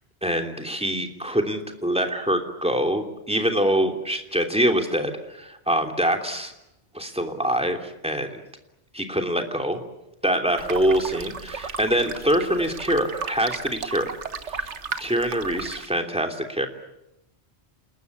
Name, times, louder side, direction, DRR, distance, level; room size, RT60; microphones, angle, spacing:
voice 1, 0.2-6.5 6.9-8.4 8.9-9.8 10.2-14.1 14.5-14.7 15.0-16.7, equal, 5° right, 4 dB, 3.1 m, -24 dB
sound 1, 10.6-15.9, right 5 dB, 90° right, 1.6 m, -34 dB
28.5 x 20.5 x 9.6 m, 0.89 s
omnidirectional pair, 1.2 m